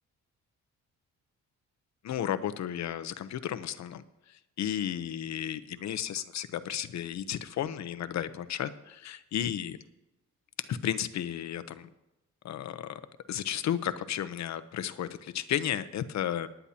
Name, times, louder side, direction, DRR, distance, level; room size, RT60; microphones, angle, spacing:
voice 1, 2.0-9.8 10.7-11.9 12.4-13.0 13.3-16.5, left 10 dB, 65° left, 12 dB, 0.9 m, -33 dB
19.5 x 10.0 x 2.9 m, 0.95 s
cardioid pair, 90°, 30 cm